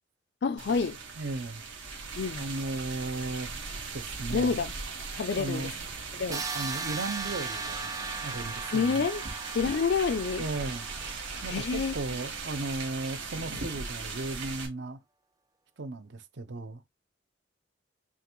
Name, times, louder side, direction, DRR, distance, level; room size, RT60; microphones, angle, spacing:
voice 1, 0.4-1.0 2.2-2.4 4.3-4.7 5.2-5.7 6.2-6.4 8.7-9.2 9.5-10.4 11.5-11.9, left 5 dB, 60° left, 0.4 m, -28 dB
sound 1, 0.6-14.7, right 4 dB, 80° right, 1.6 m, -39 dB
voice 2, 1.2-1.6 2.3-3.5 3.9-4.7 5.3-5.7 6.3-7.9 8.2-9.1 10.4-10.9 11.4-15.0 15.8-16.8, right 2 dB, 65° right, 0.7 m, -36 dB
sound 2, 6.3-12.1, right 4 dB, 20° right, 0.4 m, -38 dB
5.6 x 2.4 x 3.0 m
head